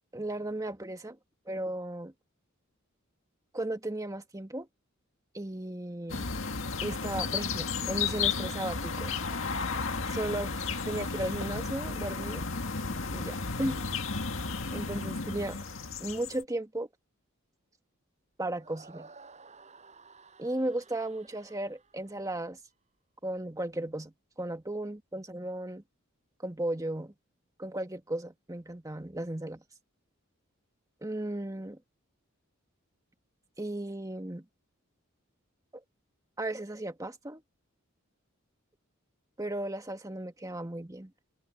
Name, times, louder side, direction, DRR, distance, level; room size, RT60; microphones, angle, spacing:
voice 1, 0.1-1.2 1.5-2.1 3.5-4.7 5.3-6.2 6.8-9.1 10.1-10.5 10.8-12.5 13.1-13.8 14.7-15.6 16.0-16.9 18.4-19.1 20.4-22.6 23.2-24.1 24.4-25.8 26.4-27.1 27.6-29.6 31.0-31.8 33.6-34.4 36.4-37.4 39.4-41.1, right 1 dB, 15° right, 1.7 m, -35 dB
sound 1, 6.1-16.4, left 4 dB, 70° left, 2.0 m, -33 dB
sound 2, 18.6-22.7, right 4 dB, 35° right, 5.7 m, -55 dB
head